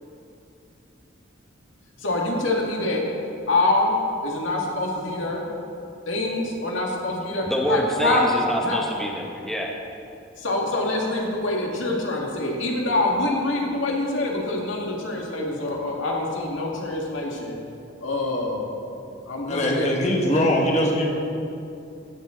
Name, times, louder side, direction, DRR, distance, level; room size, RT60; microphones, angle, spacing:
voice 1, 2.0-3.0 3.5-4.0 4.2-5.4 6.1-8.2 8.6-8.8 10.4-17.6 18.0-18.7 19.3-19.9, left 2 dB, 85° left, -1 dB, 2.0 m, -25 dB
voice 2, 7.5-9.8, equal, ahead, -1 dB, 0.9 m, -26 dB
voice 3, 19.5-21.0, equal, 35° left, -1 dB, 1.6 m, -21 dB
15.5 x 9.1 x 3.8 m, 2.7 s
head